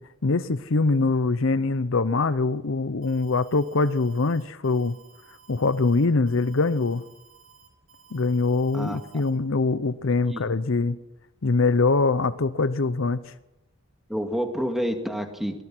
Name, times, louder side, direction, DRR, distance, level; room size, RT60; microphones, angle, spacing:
voice 1, 0.2-4.9 5.5-7.0 8.1-11.0 11.4-13.3, left 3 dB, 65° left, 0.7 m, -23 dB
Alarm, 3.0-9.3, right 7 dB, 60° right, 5.4 m, -55 dB
voice 2, 14.1-15.6, equal, ahead, 2.0 m, -28 dB
23.5 x 18.5 x 6.2 m
head